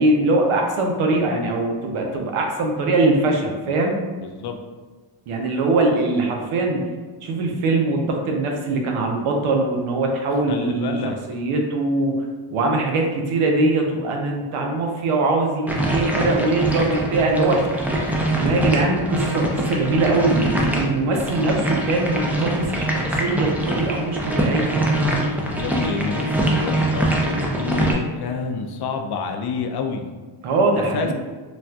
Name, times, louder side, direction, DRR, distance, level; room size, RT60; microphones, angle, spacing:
voice 1, 0.0-4.1 5.3-6.9 7.2-10.9 11.3-17.6 18.4-24.9 30.4-31.1, right 2 dB, 90° right, 1 dB, 0.7 m, -22 dB
voice 2, 4.2-4.6 10.5-11.2 18.0-18.3 25.6-30.1 30.9-31.1, left 5 dB, 55° left, 4 dB, 0.5 m, -29 dB
sound 1, 15.7-27.9, right 1 dB, 5° right, 0.4 m, -23 dB
4.0 x 2.4 x 2.3 m, 1.4 s
cardioid pair, 85°, 49 cm